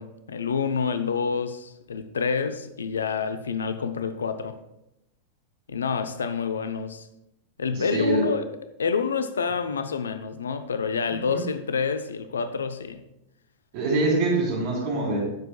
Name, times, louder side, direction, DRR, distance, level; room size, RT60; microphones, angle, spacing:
voice 1, 0.0-4.6 5.7-7.1 7.6-8.4 8.8-13.0, left 5 dB, 70° left, 0.6 m, -28 dB
voice 2, 7.9-8.2 13.7-15.2, right 2 dB, 45° right, 3.5 m, -24 dB
17.5 x 6.7 x 2.3 m
figure-of-eight pair, 90°, 0 cm